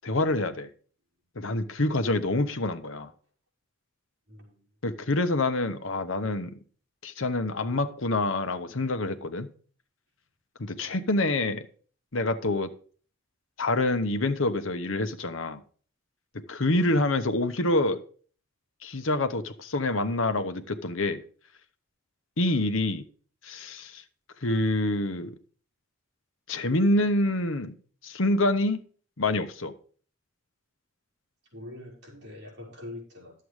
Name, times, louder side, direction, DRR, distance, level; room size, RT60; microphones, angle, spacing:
voice 1, 0.0-0.7 1.4-3.1 4.8-6.6 7.0-9.5 10.6-11.7 12.1-12.7 13.6-15.6 16.5-18.0 18.8-21.2 22.4-23.0 23.4-24.0 24.4-25.4 26.5-27.8 28.0-28.8 29.2-29.7, left 2 dB, 85° left, 1.0 m, -26 dB
voice 2, 4.3-4.7 10.8-11.0 16.7-17.0 31.5-33.3, left 1 dB, 60° right, 4.9 m, -44 dB
11.5 x 7.7 x 4.8 m
head